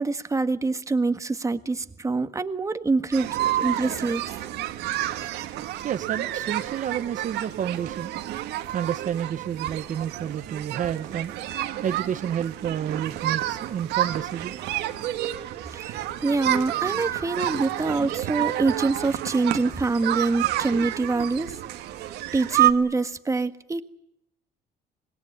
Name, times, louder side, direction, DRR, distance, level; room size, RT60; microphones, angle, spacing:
voice 1, 0.0-4.2 15.7-21.6 22.3-23.8, right 3 dB, 20° right, 1.6 m, -25 dB
sound 1, 3.1-22.7, right 13 dB, 85° right, 1.9 m, -29 dB
voice 2, 5.0-8.3 8.6-11.3 11.8-14.6, right 9 dB, 50° right, 1.0 m, -30 dB
26.0 x 21.0 x 9.8 m
cardioid pair, 110°, 17 cm